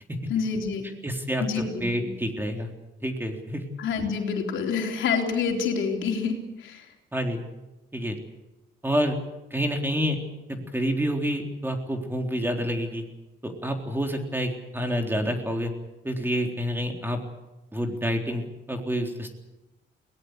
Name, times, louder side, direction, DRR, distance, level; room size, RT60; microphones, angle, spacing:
voice 1, 0.3-0.9 1.4-2.1 3.8-6.9, left 5 dB, 75° left, 2 dB, 3.9 m, -27 dB
voice 2, 1.0-2.7 3.0-3.6 7.1-7.4 7.9-8.2 8.8-9.2 9.5-10.2 10.5-13.0 13.4-15.7 16.0-17.2 17.7-19.3, equal, 10° right, 3 dB, 3.8 m, -28 dB
22.5 x 18.0 x 8.2 m, 1.0 s
cardioid pair, 90°, 20 cm